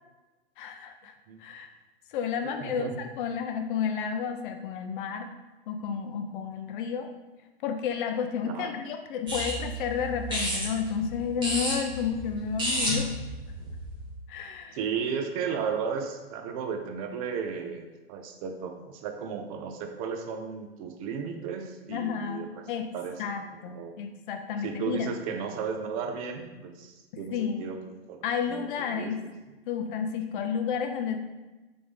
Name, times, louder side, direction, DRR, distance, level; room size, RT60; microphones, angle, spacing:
voice 1, 0.6-1.1 1.4-1.7 2.1-5.3 5.7-7.1 7.6-13.2 14.3-14.8 21.9-22.9 23.2-25.1 27.3-27.6 28.2-29.2 29.7-31.2, left 7 dB, 55° left, 5 dB, 0.5 m, -31 dB
voice 2, 2.6-2.9 8.4-8.7 14.7-22.6 22.9-23.2 23.6-24.0 24.6-27.8 28.1-29.3 30.3-30.5, right 6 dB, 35° right, 5 dB, 0.5 m, -34 dB
sound 1, 9.3-14.1, equal, 15° right, 1.2 m, -32 dB
3.8 x 3.4 x 3.4 m, 1.1 s
hypercardioid pair, 125°, 31 cm